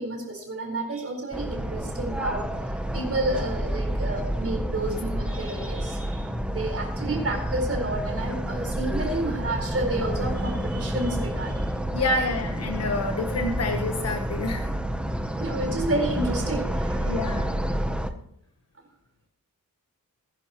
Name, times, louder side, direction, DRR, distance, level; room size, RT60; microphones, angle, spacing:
voice 1, 0.0-11.8 13.9-14.0 14.4-14.6 15.4-17.2, right 2 dB, 40° right, 1 dB, 4.4 m, -30 dB
sound 1, 1.3-18.1, equal, 5° right, 0.7 m, -29 dB
voice 2, 11.9-14.6 17.0-17.5, left 2 dB, 45° left, 3 dB, 1.1 m, -28 dB
21.0 x 10.5 x 3.0 m, 0.71 s
wide cardioid pair, 175°, 36 cm